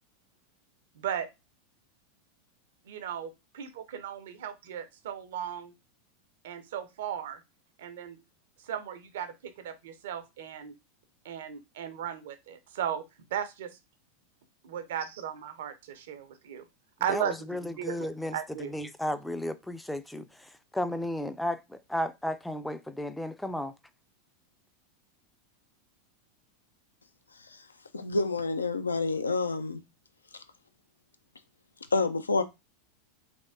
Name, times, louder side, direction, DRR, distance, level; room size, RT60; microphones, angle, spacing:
voice 1, 0.9-1.3 2.8-5.7 6.4-7.4 7.8-8.2 8.6-10.7 11.2-13.0 13.3-13.8 14.6-16.6 17.0-18.7, right 9 dB, 60° right, 0.6 m, -36 dB
voice 2, 17.1-23.7, left 1 dB, 5° left, 0.4 m, -34 dB
voice 3, 27.9-29.8 31.9-32.4, left 3 dB, 80° left, 0.4 m, -28 dB
3.4 x 3.2 x 2.6 m
figure-of-eight pair, 85°, 0 cm